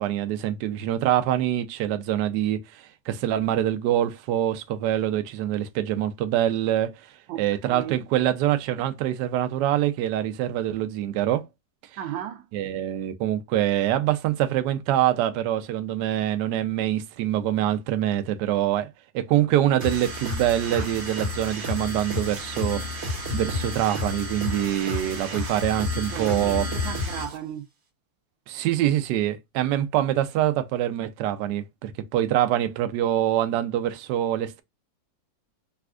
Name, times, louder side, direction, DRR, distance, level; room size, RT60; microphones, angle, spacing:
voice 1, 0.0-6.9 7.3-11.4 12.5-18.9 19.1-26.7 28.5-34.6, right 12 dB, 75° right, 1.1 m, -25 dB
voice 2, 7.3-7.9 12.0-12.5 26.1-27.7, right 11 dB, 90° right, 1.3 m, -35 dB
sound 1, 19.8-27.4, left 2 dB, 55° right, 1.3 m, -30 dB
4.1 x 2.3 x 2.2 m
omnidirectional pair, 2.0 m